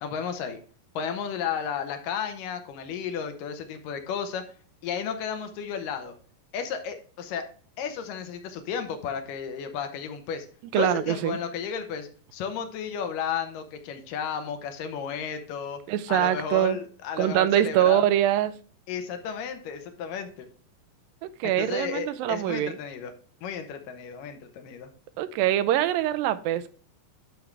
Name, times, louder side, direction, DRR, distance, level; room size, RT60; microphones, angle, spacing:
voice 1, 0.0-0.6 1.0-4.4 4.8-6.1 6.5-7.5 7.8-10.5 10.7-15.8 16.1-18.0 18.9-20.5 21.4-23.1 23.4-24.9, left 7 dB, 75° left, 2.5 m, -33 dB
voice 2, 10.7-11.4 15.9-16.8 17.2-18.5 21.2-22.7 25.2-26.7, right 12 dB, 85° right, 2.4 m, -24 dB
12.0 x 4.7 x 3.3 m
omnidirectional pair, 4.0 m